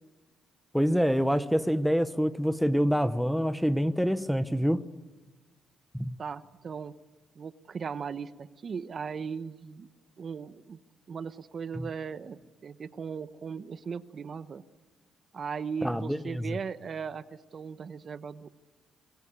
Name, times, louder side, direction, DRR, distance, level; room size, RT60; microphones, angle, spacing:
voice 1, 0.7-4.8 5.9-6.2 11.7-11.9 15.8-16.6, equal, ahead, 1.0 m, -26 dB
voice 2, 6.2-6.9 7.3-9.9 10.2-10.8 11.1-14.6 15.3-18.5, right 6 dB, 45° right, 1.0 m, -38 dB
25.0 x 22.0 x 8.3 m
cardioid pair, 90°, 0 cm